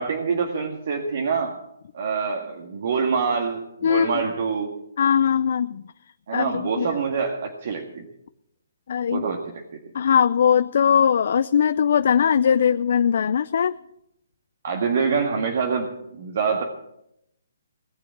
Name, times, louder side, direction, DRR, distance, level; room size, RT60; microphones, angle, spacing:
voice 1, 0.0-1.6 1.9-4.7 6.3-8.1 9.1-9.4 9.7-9.8 14.6-16.6, right 5 dB, 55° right, 2 dB, 1.9 m, -25 dB
voice 2, 3.8-4.2 5.0-5.8 6.3-7.0 8.9-9.3 9.9-13.8, left 8 dB, 55° left, 12 dB, 0.5 m, -20 dB
19.0 x 7.1 x 8.7 m, 0.81 s
hypercardioid pair, 150°, 0 cm